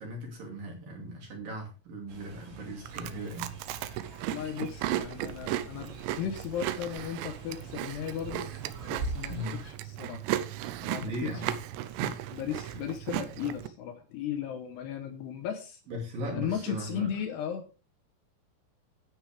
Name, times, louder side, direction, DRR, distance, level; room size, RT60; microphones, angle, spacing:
voice 1, 0.0-3.5 3.8-4.5 9.3-9.6 11.0-11.5 11.8-12.2 15.9-17.2, equal, 50° right, 1 dB, 3.8 m, -39 dB
Fowl, 2.1-9.7, right 2 dB, 65° right, 5.6 m, -44 dB
Chewing mastication, 2.9-13.7, right 13 dB, 90° right, 2.5 m, -36 dB
voice 2, 4.3-8.5 8.9-9.3 9.7-10.2 10.8-11.1 12.3-15.8 16.3-17.8, left 9 dB, 80° left, 7 dB, 2.4 m, -36 dB
12.0 x 9.6 x 3.4 m, 0.33 s
omnidirectional pair, 6.0 m